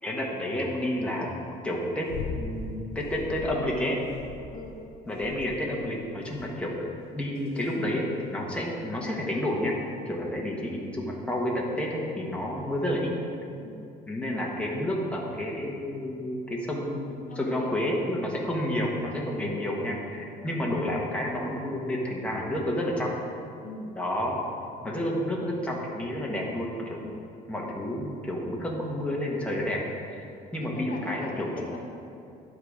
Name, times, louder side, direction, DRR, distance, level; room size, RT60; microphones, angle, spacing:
voice 1, 0.0-1.4 1.6-4.0 5.1-6.7 7.1-9.7 10.1-13.1 14.1-23.1 24.0-24.4 24.8-27.0 27.5-29.8 30.1-30.3 30.5-31.5, left 1 dB, 5° left, -3 dB, 1.3 m, -30 dB
sound 1, 2.1-2.5 3.0-3.6 4.1-4.7 5.2-5.7 6.3-6.7 7.4-7.7 8.7-8.8, left 6 dB, 70° left, 0.8 m, -38 dB
voice 2, 17.3-17.7 19.3-19.6 20.4-20.6 23.6-23.9 24.9-25.1 27.0-27.2 30.6-31.8, left 3 dB, 55° left, 0 dB, 1.2 m, -42 dB
11.5 x 3.9 x 5.0 m, 2.6 s
cardioid pair, 110°, 17 cm